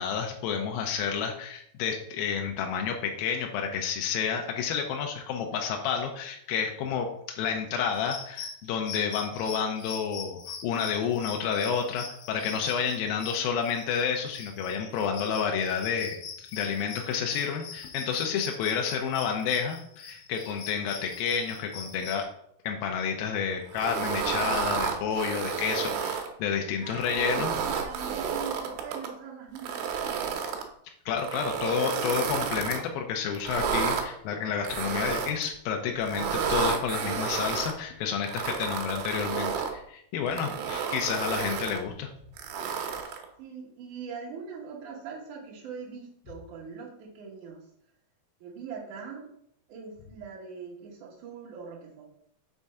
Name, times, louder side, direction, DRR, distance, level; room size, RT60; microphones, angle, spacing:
voice 1, 0.0-22.3 22.6-27.6 31.1-42.1, left 7 dB, 90° left, 2 dB, 2.5 m, -30 dB
sound 1, 7.9-22.2, left 6 dB, 65° left, 2.3 m, -42 dB
sound 2, 23.7-26.3 26.9-29.1 29.6-30.6 31.2-32.8 33.4-34.0 34.7-35.5 36.0-37.7 38.2-39.7 40.3-41.8 42.4-43.3, right 6 dB, 85° right, 2.7 m, -31 dB
voice 2, 26.8-27.1 27.6-30.4 40.4-40.8 43.4-47.7 48.4-49.3 49.7-52.0, right 6 dB, 65° right, -3 dB, 2.5 m, -42 dB
6.4 x 3.5 x 5.5 m, 0.69 s
omnidirectional pair, 4.1 m